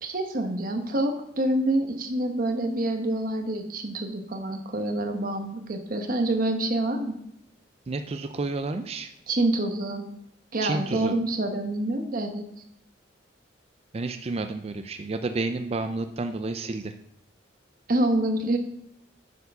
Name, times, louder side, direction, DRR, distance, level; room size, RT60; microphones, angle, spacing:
voice 1, 0.0-7.2 9.3-10.1 10.5-12.4 17.9-18.6, right 1 dB, 50° right, 4 dB, 1.0 m, -27 dB
voice 2, 7.9-9.1 10.6-11.1 13.9-16.9, right 3 dB, 30° right, 7 dB, 0.4 m, -30 dB
8.2 x 4.6 x 5.4 m, 0.77 s
head